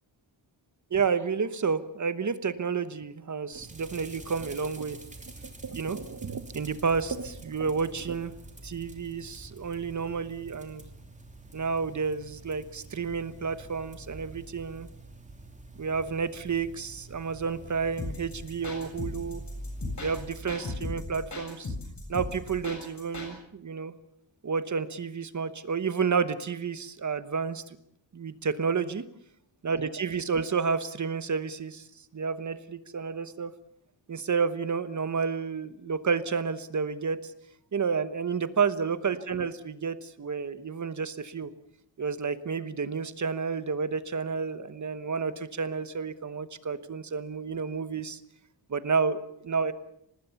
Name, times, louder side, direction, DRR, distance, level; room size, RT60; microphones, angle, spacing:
voice 1, 0.9-5.0 5.6-8.3 8.6-10.8 11.5-14.9 15.8-19.4 20.0-21.7 22.1-23.9 24.4-27.6 28.1-29.0 29.6-31.9 32.1-33.5 34.1-37.3 37.7-41.5 42.0-48.2 48.7-49.7, right 5 dB, 40° right, 13 dB, 1.1 m, -30 dB
sound 1, 3.5-20.5, right 2 dB, 15° right, 3.1 m, -46 dB
sound 2, 18.0-23.3, left 2 dB, 40° left, 7.2 m, -37 dB
25.5 x 19.5 x 7.0 m, 0.74 s
wide cardioid pair, 145°, 44 cm